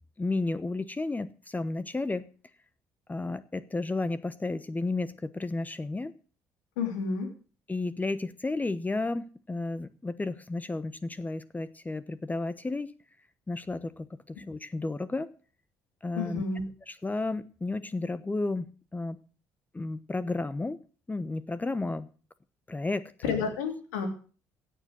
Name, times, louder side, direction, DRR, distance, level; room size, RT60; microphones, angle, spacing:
voice 1, 0.2-2.3 3.1-6.1 7.7-12.9 13.5-15.3 16.0-16.4 16.9-19.2 19.7-20.8 21.1-22.1 22.7-23.3, left 2 dB, 20° left, 15 dB, 1.0 m, -32 dB
voice 2, 6.8-7.3 16.2-16.6 23.2-24.1, left 5 dB, 90° left, 5 dB, 3.1 m, -30 dB
16.0 x 7.6 x 6.5 m, 0.38 s
hypercardioid pair, 60°, 8 cm